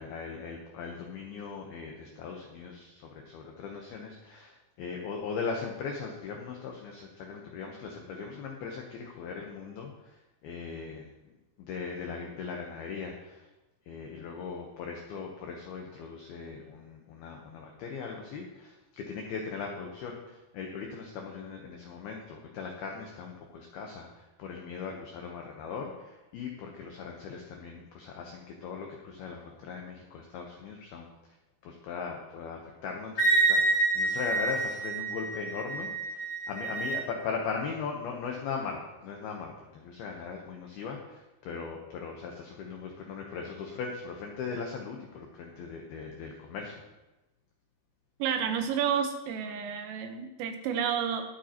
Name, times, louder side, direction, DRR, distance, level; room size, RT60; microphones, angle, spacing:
voice 1, 0.0-11.1 11.6-13.5 13.9-31.1 31.6-46.9, left 5 dB, 85° left, 1 dB, 2.2 m, -39 dB
Wind instrument woodwind instrument, 33.2-37.0, right 3 dB, 30° left, 1.9 m, -28 dB
voice 2, 48.2-51.2, right 8 dB, 80° right, 6 dB, 3.6 m, -30 dB
21.0 x 7.7 x 2.9 m, 1.0 s
omnidirectional pair, 5.8 m